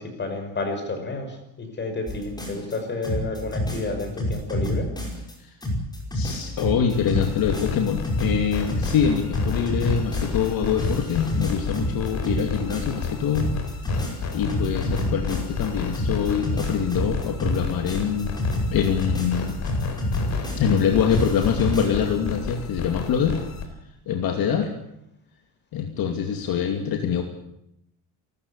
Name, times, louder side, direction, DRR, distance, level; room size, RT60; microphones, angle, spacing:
voice 1, 0.0-4.9, left 3 dB, 25° left, 5 dB, 5.7 m, -30 dB
sound 1, 2.1-2.8 3.0-5.3 5.6-10.5 10.8-13.1 13.4-15.7 15.9-20.8 21.1-21.9, equal, 10° left, 5.3 m, -28 dB
voice 2, 6.1-13.5 14.3-18.3 18.7-19.6 20.6-23.4 24.1-24.7 25.7-27.2, left 7 dB, 60° left, 4 dB, 2.6 m, -24 dB
sound 2, 6.9-23.7, left 6 dB, 40° left, 4.2 m, -32 dB
29.0 x 14.0 x 8.5 m, 0.82 s
cardioid pair, 170°, 41 cm